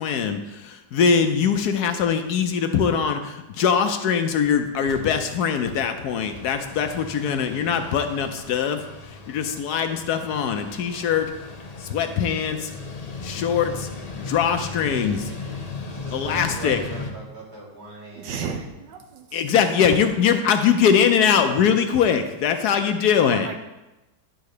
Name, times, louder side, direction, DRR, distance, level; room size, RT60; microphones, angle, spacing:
voice 1, 0.0-8.8 9.3-11.3 11.8-12.7 13.2-13.9 14.2-15.3 16.1-16.8 19.3-23.5, left 7 dB, 70° left, 7 dB, 1.1 m, -22 dB
Mechanical fan, 4.1-4.2 4.5-4.6 4.7-17.1, left 3 dB, 40° left, 0.5 m, -37 dB
voice 2, 15.9-18.7, right 2 dB, 65° right, -4 dB, 2.8 m, -40 dB
voice 3, 18.1-19.2 23.3-23.6, right 6 dB, 80° right, 5 dB, 1.5 m, -33 dB
10.5 x 3.9 x 6.5 m, 1.0 s
omnidirectional pair, 1.9 m